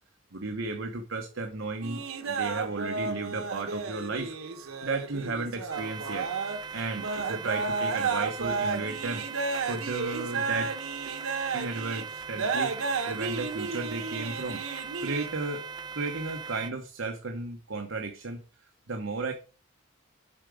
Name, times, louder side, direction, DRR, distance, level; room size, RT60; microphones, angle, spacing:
voice 1, 0.3-2.0 2.3-4.3 4.8-6.3 6.7-9.3 9.6-10.8 11.1-11.2 11.5-14.6 15.0-15.7 15.9-18.4 18.9-19.3, right 3 dB, 65° right, 5 dB, 0.9 m, -34 dB
sound 1, 1.8-15.3, right 4 dB, 85° right, 1.1 m, -32 dB
sound 2, 5.7-16.7, right 5 dB, 20° right, 0.5 m, -40 dB
7.4 x 4.9 x 4.9 m, 0.35 s
head